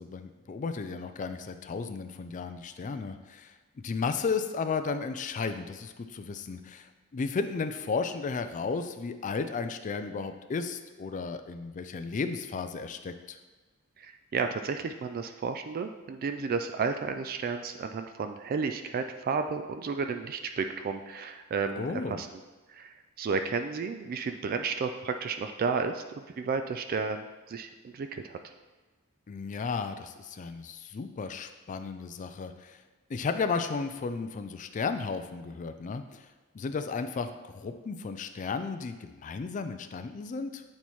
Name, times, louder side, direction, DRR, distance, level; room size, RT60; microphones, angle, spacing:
voice 1, 0.0-13.4 21.8-22.2 29.3-32.8 33.1-36.3 36.5-40.6, left 4 dB, 35° left, 8 dB, 0.3 m, -34 dB
voice 2, 14.0-22.4 22.7-28.5, right 5 dB, 45° right, 7 dB, 0.3 m, -32 dB
8.8 x 4.2 x 3.1 m, 1.3 s
head